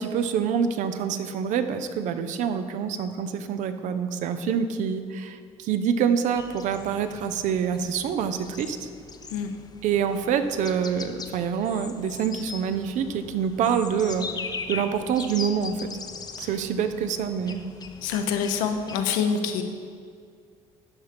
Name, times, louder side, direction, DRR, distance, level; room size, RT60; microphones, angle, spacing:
voice 1, 0.0-8.9 9.8-14.3 14.7-15.8 16.4-17.6, right 7 dB, 70° right, 10 dB, 0.6 m, -26 dB
sound 1, 6.4-19.1, left 5 dB, 30° left, 0.6 m, -40 dB
voice 2, 18.0-19.6, left 6 dB, 85° left, 6 dB, 0.8 m, -26 dB
11.5 x 4.2 x 5.1 m, 2.2 s
supercardioid pair, 90°, 13 cm